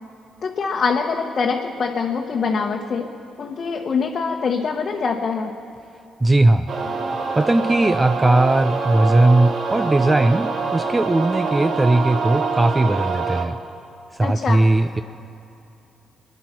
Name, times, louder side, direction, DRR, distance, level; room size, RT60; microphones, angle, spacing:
voice 1, 0.4-3.1 3.4-5.5 14.2-14.7, left 5 dB, 45° left, 0 dB, 1.1 m, -24 dB
voice 2, 6.2-6.7 7.3-13.6 14.2-15.0, right 2 dB, 15° right, 9 dB, 0.5 m, -18 dB
sound 1, 6.7-13.5, right 4 dB, 50° right, 1.6 m, -25 dB
21.5 x 10.5 x 6.0 m, 2.8 s
cardioid pair, 90°, 0 cm